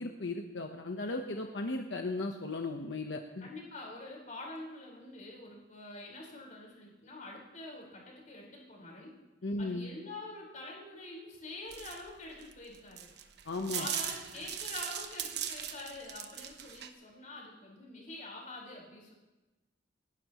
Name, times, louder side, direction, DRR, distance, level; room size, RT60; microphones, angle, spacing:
voice 1, 0.0-3.5 9.4-9.9 13.4-13.9, left 2 dB, 85° left, 3 dB, 1.0 m, -36 dB
voice 2, 3.4-9.1 9.6-13.1 13.7-19.1, left 2 dB, 45° left, -2 dB, 4.7 m, -46 dB
sound 1, 11.7-16.9, right 9 dB, 65° right, 1.1 m, -39 dB
28.5 x 12.0 x 3.1 m, 1.1 s
head